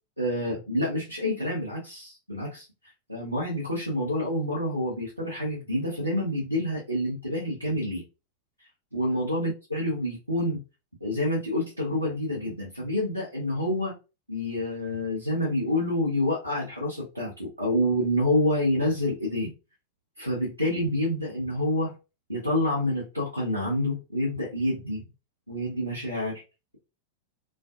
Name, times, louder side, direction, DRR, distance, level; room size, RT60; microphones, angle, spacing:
voice 1, 0.2-2.6 3.1-8.0 8.9-10.6 11.0-13.9 14.3-19.5 20.2-21.9 22.3-25.0 25.5-26.4, left 1 dB, 90° right, -5 dB, 0.8 m, -28 dB
2.4 x 2.4 x 2.4 m, 0.30 s
figure-of-eight pair, 90°, 0 cm